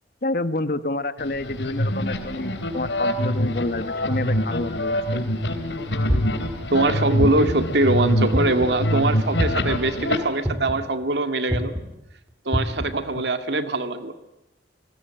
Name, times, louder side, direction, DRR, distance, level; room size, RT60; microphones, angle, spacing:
voice 1, 0.2-5.2, left 2 dB, 55° left, 12 dB, 1.2 m, -28 dB
sound 1, 1.2-10.2, equal, 90° left, 3.3 m, -25 dB
sound 2, 6.1-6.5 7.2-7.7 8.3-8.8 9.4-9.8 10.4-10.9 11.5-11.8 12.5-12.9, equal, 10° right, 3.4 m, -24 dB
voice 2, 6.7-11.7 12.5-14.1, right 2 dB, 70° right, 8 dB, 2.0 m, -23 dB
29.0 x 19.5 x 8.9 m, 0.93 s
head